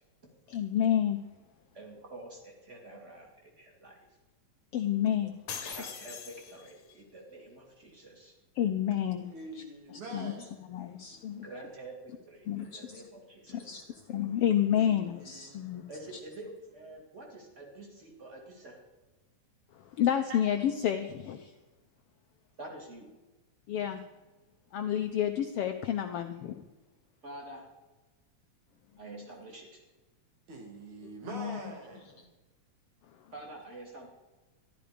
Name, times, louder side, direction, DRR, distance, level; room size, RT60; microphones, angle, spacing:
voice 1, 0.5-1.2 4.7-5.3 5.6-5.9 8.5-9.3 9.9-10.3 10.7-11.5 12.5-13.0 13.5-15.8 19.7-21.5 23.7-24.0 24.7-26.6 31.3-31.6, left 10 dB, 75° left, 1.4 m, -30 dB
voice 2, 1.7-4.0 5.6-8.3 11.4-13.7 15.9-18.8 22.6-23.1 27.2-27.6 29.0-29.8 33.3-34.1, right 2 dB, 25° right, 3.0 m, -47 dB
sound 1, 5.5-6.9, left 7 dB, 55° left, 1.8 m, -41 dB
voice 3, 9.3-10.5 14.8-16.1 20.3-20.4 30.5-32.3, right 2 dB, 75° right, 3.9 m, -45 dB
13.5 x 12.0 x 5.1 m
omnidirectional pair, 3.3 m